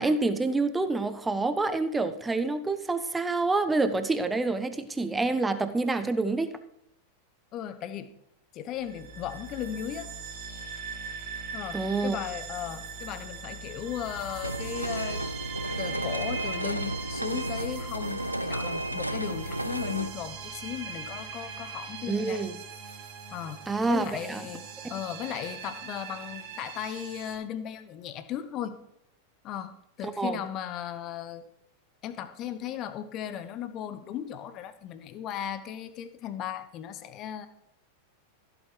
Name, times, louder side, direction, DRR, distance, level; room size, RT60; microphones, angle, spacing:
voice 1, 0.0-6.5 11.7-12.2 22.1-22.5 23.7-24.4 24.8-24.9 30.0-30.4, right 3 dB, 10° right, 10 dB, 1.1 m, -27 dB
voice 2, 7.5-8.1 8.5-10.1 11.5-15.2 15.8-22.4 23.3-28.8 29.4-31.4 32.0-37.5, left 10 dB, 35° left, 12 dB, 1.2 m, -36 dB
sound 1, 8.8-27.4, right 5 dB, 50° right, 2.6 m, -41 dB
sound 2, 14.4-20.1, right 1 dB, 85° right, 0.5 m, -32 dB
15.5 x 8.1 x 4.7 m, 0.77 s
figure-of-eight pair, 90°, 0 cm